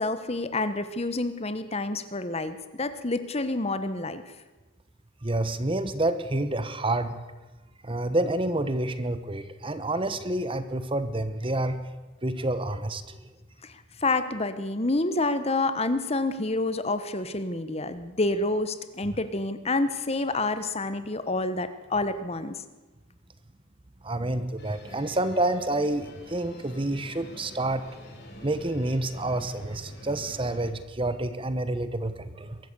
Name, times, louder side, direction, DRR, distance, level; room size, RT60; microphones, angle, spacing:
voice 1, 0.0-4.2 13.6-13.7 14.0-22.6, left 2 dB, 30° left, 12 dB, 1.1 m, -28 dB
voice 2, 5.2-7.2 7.8-11.8 12.2-13.2 24.0-27.8 28.4-32.6, right 1 dB, 25° right, 12 dB, 1.1 m, -28 dB
sound 1, 24.6-30.7, equal, 50° left, 4.3 m, -46 dB
22.5 x 14.0 x 8.2 m, 1.2 s
head